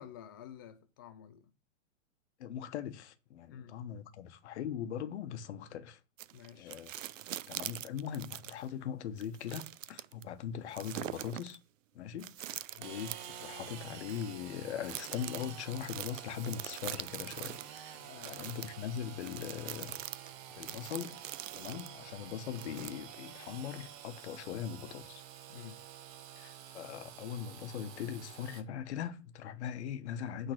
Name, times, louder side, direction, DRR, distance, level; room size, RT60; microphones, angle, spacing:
voice 1, 0.0-1.5 3.5-3.8 6.3-6.8 12.7-13.0 17.9-18.5 25.5-25.8, left 9 dB, 20° left, 0.3 m, -51 dB
voice 2, 2.4-6.0 6.6-6.9 7.5-11.6 11.9-18.0 18.2-20.0 20.5-21.2 21.5-25.2 26.3-30.5, left 9 dB, 55° left, 1.2 m, -40 dB
sound 1, 6.2-8.7 9.2-10.2 10.7-11.6 12.2-13.5 14.1-14.2 14.8-17.8 18.2-21.9 22.6-23.3 23.8-23.9, right 12 dB, 70° right, 0.6 m, -43 dB
Engine / Sawing, 12.8-28.6, right 10 dB, 35° right, 1.2 m, -49 dB
9.0 x 3.9 x 5.9 m
hypercardioid pair, 140°, 40 cm